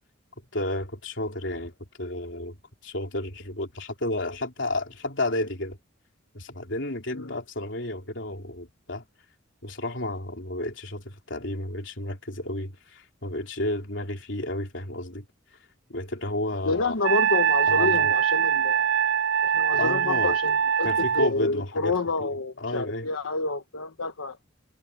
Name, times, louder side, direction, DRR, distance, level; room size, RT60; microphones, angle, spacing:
voice 1, 0.5-1.7 2.0-2.6 2.8-5.8 6.3-9.0 9.6-15.3 15.9-17.0 17.7-18.1 19.7-20.4 20.8-22.3 22.6-23.1, left 1 dB, 60° left, 3.8 m, -32 dB
voice 2, 16.6-18.9 19.4-24.4, left 3 dB, 90° left, 1.2 m, -29 dB
Wind instrument woodwind instrument, 17.0-21.3, right 8 dB, 65° right, 0.4 m, -23 dB
head